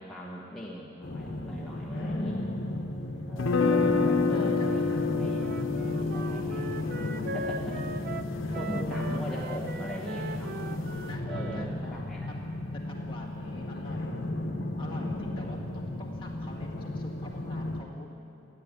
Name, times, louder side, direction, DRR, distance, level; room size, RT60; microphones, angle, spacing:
voice 1, 0.0-2.4 3.3-6.8 7.3-7.9 8.5-10.6 11.2-12.3 13.1-13.7 15.2-15.6 15.8-15.9, equal, ahead, -5 dB, 1.3 m, -40 dB
sound 1, 1.0-17.8, left 1 dB, 55° left, 1.3 m, -34 dB
voice 2, 1.9-2.7 4.3-4.7 5.9-6.7 7.2-7.4 8.4-9.3 11.0-12.0 12.3-12.4 12.7-14.2 14.8-18.1, equal, 25° left, -2 dB, 2.0 m, -46 dB
sound 2, 3.4-9.4, left 4 dB, 80° left, 0.8 m, -29 dB
Wind instrument woodwind instrument, 5.4-11.7, right 4 dB, 50° right, 0.5 m, -40 dB
16.0 x 9.8 x 9.0 m, 2.8 s
head